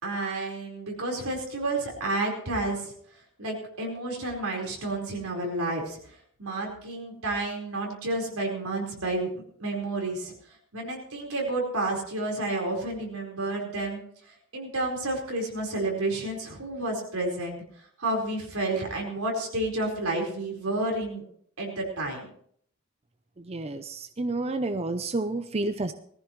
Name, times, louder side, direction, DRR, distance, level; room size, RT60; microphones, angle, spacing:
voice 1, 0.0-2.9 3.4-6.0 6.4-10.3 10.7-14.0 14.3-17.6 18.0-21.2 21.6-22.3, right 2 dB, 90° right, 0 dB, 4.5 m, -30 dB
voice 2, 23.4-25.9, right 2 dB, 30° right, 9 dB, 0.6 m, -30 dB
19.5 x 14.5 x 3.1 m, 0.62 s
head